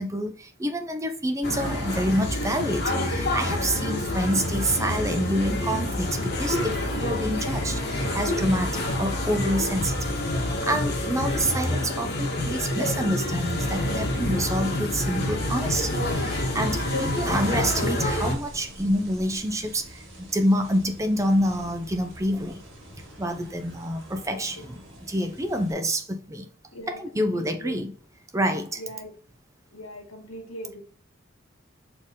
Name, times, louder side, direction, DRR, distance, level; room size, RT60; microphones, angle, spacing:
voice 1, 0.0-10.2 10.6-20.0 20.3-22.6 23.2-24.8 25.1-26.5 26.9-27.9 28.3-28.8, equal, 15° right, 0.5 m, -27 dB
sound 1, 1.4-18.3, left 1 dB, 45° left, 1.8 m, -27 dB
sound 2, 15.7-25.7, right 1 dB, 60° right, 2.6 m, -45 dB
voice 2, 26.7-27.8 28.8-29.1 29.7-30.8, equal, 85° left, 1.8 m, -40 dB
6.7 x 4.3 x 3.7 m
head